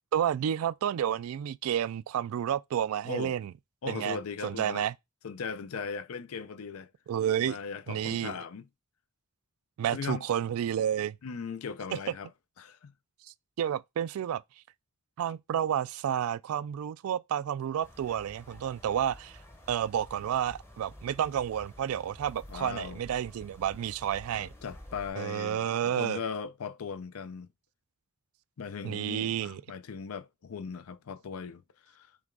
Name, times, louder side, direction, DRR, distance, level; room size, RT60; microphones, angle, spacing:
voice 1, 0.1-3.5 3.9-4.2 4.4-4.9 7.1-7.6 7.9-8.3 9.8-11.2 13.6-14.4 15.2-19.4 19.7-24.5 25.2-26.2 28.8-29.6, right 9 dB, 80° right, 0.3 m, -30 dB
voice 2, 3.8-4.9 5.2-6.9 7.4-8.7 9.9-10.2 11.2-12.3 12.6-12.9 22.5-23.0 24.4-27.5 28.6-31.6 31.9-32.1, left 5 dB, 80° left, 0.5 m, -38 dB
sound 1, 17.8-25.1, equal, 10° left, 0.7 m, -50 dB
5.9 x 2.3 x 3.7 m
head